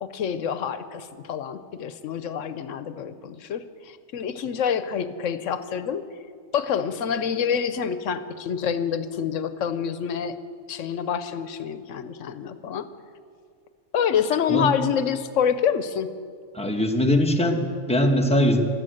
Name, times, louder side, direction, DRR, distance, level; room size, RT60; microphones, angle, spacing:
voice 1, 0.0-6.0 6.5-10.4 10.7-12.9 13.9-16.1, left 7 dB, 85° left, 11 dB, 1.1 m, -27 dB
voice 2, 16.5-18.6, left 1 dB, 5° left, 1 dB, 1.3 m, -21 dB
15.0 x 12.5 x 7.8 m, 2.1 s
omnidirectional pair, 1.3 m